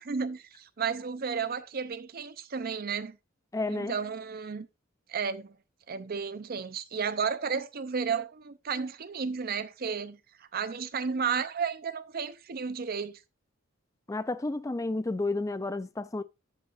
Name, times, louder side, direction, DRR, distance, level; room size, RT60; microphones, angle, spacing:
voice 1, 0.0-3.2 3.7-4.7 5.1-5.6 5.9-10.2 10.5-13.2, right 6 dB, 50° right, 0.5 m, -33 dB
voice 2, 3.5-3.9 14.1-16.2, left 2 dB, 15° left, 0.4 m, -31 dB
14.0 x 5.6 x 2.4 m
head